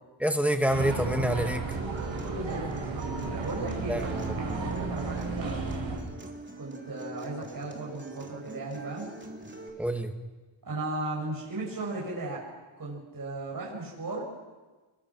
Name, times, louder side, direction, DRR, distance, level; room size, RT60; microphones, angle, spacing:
voice 1, 0.2-1.6 3.9-4.3 9.8-10.1, equal, 5° right, 5 dB, 2.0 m, -27 dB
sound 1, 0.7-6.0, right 4 dB, 70° right, 6.9 m, -33 dB
Acoustic guitar, 1.7-9.7, right 2 dB, 20° right, 3.7 m, -44 dB
voice 2, 2.2-5.8 6.6-9.1 10.6-12.4 12.8-14.2, right 2 dB, 45° right, -4 dB, 7.1 m, -36 dB
28.5 x 23.0 x 6.3 m, 1.3 s
wide cardioid pair, 115°, 48 cm